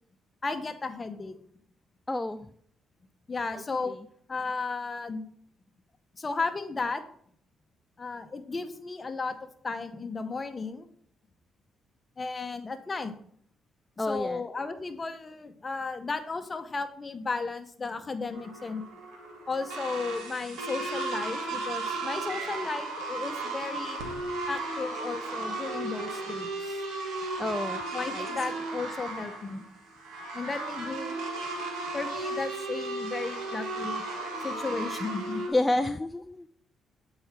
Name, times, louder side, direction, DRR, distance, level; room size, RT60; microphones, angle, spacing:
voice 1, 0.4-1.4 3.3-4.0 4.3-5.2 6.2-7.0 8.0-9.4 9.6-10.9 12.2-13.1 14.0-18.8 19.5-24.0 24.5-26.8 27.9-29.6 30.3-31.1 31.9-34.0 34.4-35.4, left 4 dB, 30° left, 8 dB, 0.8 m, -34 dB
voice 2, 2.1-2.5 3.5-4.0 14.0-14.4 27.4-27.8 28.1-28.3 35.5-36.5, left 2 dB, 15° left, 10 dB, 0.3 m, -29 dB
sound 1, 18.3-35.5, right 2 dB, 90° right, 1.6 m, -35 dB
7.7 x 4.8 x 4.4 m, 0.63 s
cardioid pair, 90°, 0 cm